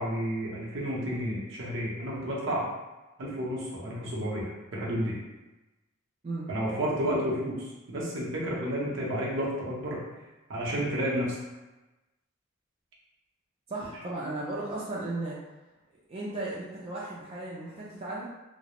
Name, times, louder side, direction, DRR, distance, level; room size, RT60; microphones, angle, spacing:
voice 1, 0.0-2.7 3.2-5.1 6.5-10.0 10.5-11.4, equal, 65° right, -5 dB, 0.7 m, -31 dB
voice 2, 13.7-15.4 16.1-18.3, right 2 dB, 30° right, -6 dB, 0.4 m, -35 dB
2.3 x 2.0 x 2.9 m, 1.1 s
head